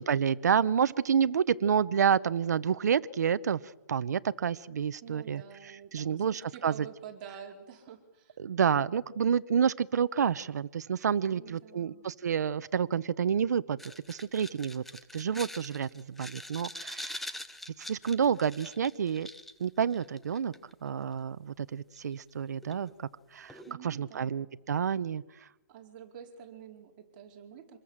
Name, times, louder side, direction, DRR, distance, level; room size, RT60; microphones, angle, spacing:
voice 1, 0.0-3.6 3.9-5.4 5.9-6.9 8.4-14.8 15.1-17.3 17.8-19.3 19.6-20.5 20.8-25.2, right 7 dB, 65° right, 0.9 m, -29 dB
voice 2, 5.0-8.4 11.3-12.1 23.7-24.5 25.7-27.8, right 8 dB, 30° right, 4.6 m, -48 dB
sound 1, 13.8-20.7 22.0-22.1 22.6-22.9 23.5-23.7, left 1 dB, ahead, 0.8 m, -44 dB
27.5 x 21.0 x 7.5 m
hypercardioid pair, 165°, 10 cm